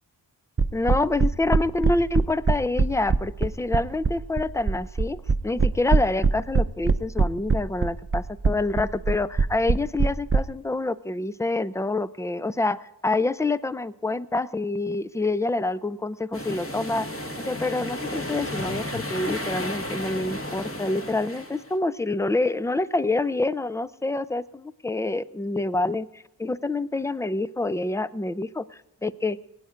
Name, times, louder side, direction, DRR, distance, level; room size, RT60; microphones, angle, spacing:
sound 1, 0.6-10.4, right 4 dB, 30° right, 0.7 m, -21 dB
voice 1, 0.7-17.2 17.5-29.4, left 2 dB, 5° left, 17 dB, 0.4 m, -27 dB
sound 2, 16.3-21.7, left 1 dB, 30° left, 1.5 m, -33 dB
20.5 x 9.2 x 5.0 m, 0.88 s
wide cardioid pair, 65°, 42 cm